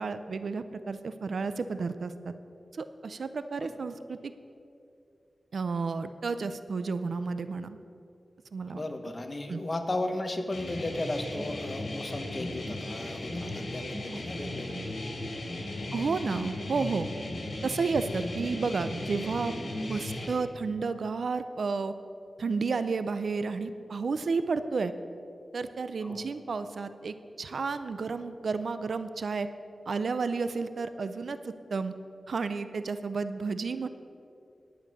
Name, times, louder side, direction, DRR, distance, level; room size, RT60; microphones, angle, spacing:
voice 1, 0.0-2.3 2.7-4.3 5.5-7.8 8.5-8.8 9.5-9.6 15.9-17.1 17.6-19.5 19.8-21.9 22.4-24.9 25.5-29.5 29.9-31.9 32.3-33.9, right 4 dB, 80° right, 11 dB, 0.5 m, -32 dB
voice 2, 8.7-15.1 15.5-15.9 26.0-26.2, left 2 dB, 35° left, 6 dB, 1.2 m, -35 dB
sound 1, 10.5-20.3, left 1 dB, 70° left, 3.0 m, -36 dB
11.0 x 8.8 x 6.5 m, 2.6 s
wide cardioid pair, 70°, 0 cm